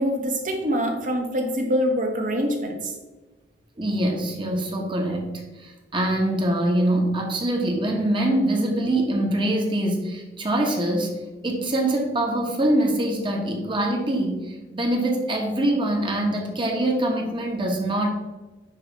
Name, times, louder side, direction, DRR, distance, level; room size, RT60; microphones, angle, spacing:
voice 1, 0.0-2.9, equal, 50° right, 2 dB, 1.4 m, -24 dB
voice 2, 3.8-11.2 11.4-18.1, right 1 dB, 30° right, 0 dB, 1.4 m, -24 dB
9.8 x 3.3 x 4.7 m, 1.2 s
head